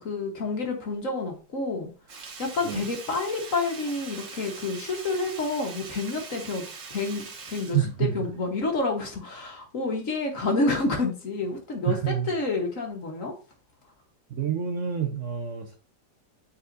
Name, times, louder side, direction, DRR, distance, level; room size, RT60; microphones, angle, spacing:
voice 1, 0.0-1.9 2.4-13.3, left 3 dB, 50° left, 1.5 m, -29 dB
Sink (filling or washing), 2.1-8.6 8.9-9.0, right 5 dB, 75° right, 1.9 m, -42 dB
voice 2, 7.7-8.3 11.9-12.3 14.3-15.8, right 9 dB, 55° right, 1.0 m, -28 dB
8.9 x 4.2 x 2.6 m
omnidirectional pair, 1.9 m